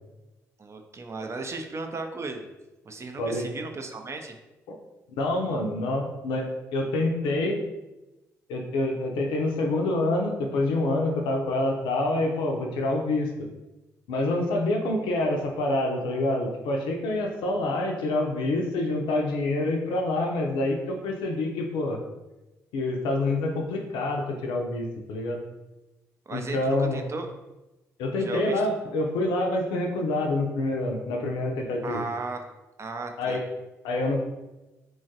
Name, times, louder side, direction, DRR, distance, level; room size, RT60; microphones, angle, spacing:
voice 1, 0.6-2.5 2.8-4.4 26.3-27.3 28.2-28.6 31.8-32.5 32.8-33.4, right 3 dB, 35° right, 5 dB, 0.4 m, -35 dB
voice 2, 5.2-7.6 8.5-13.3 14.1-22.0 22.7-25.4 26.3-27.0 28.0-32.0 33.2-33.4 33.8-34.2, left 2 dB, 75° left, 2 dB, 0.4 m, -27 dB
3.0 x 2.3 x 2.7 m, 1.0 s
hypercardioid pair, 45°, 8 cm